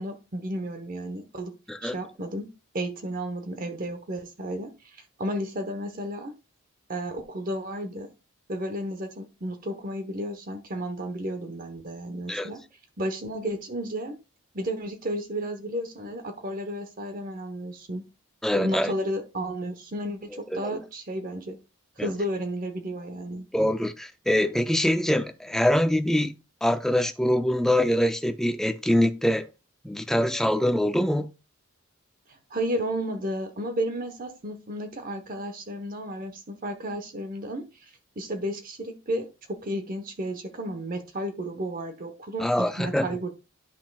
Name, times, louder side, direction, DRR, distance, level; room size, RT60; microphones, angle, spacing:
voice 1, 0.0-1.5 1.8-4.7 5.2-6.3 6.9-8.1 8.5-12.6 13.0-14.2 14.5-18.0 18.5-21.6 22.0-23.5 32.3-37.7 38.2-43.3, right 1 dB, 40° right, 0.9 m, -32 dB
voice 2, 18.4-18.9 20.5-20.8 22.0-22.1 23.5-26.3 26.6-29.5 29.8-31.3 42.4-43.1, left 1 dB, ahead, 0.4 m, -24 dB
10.0 x 5.9 x 2.3 m
head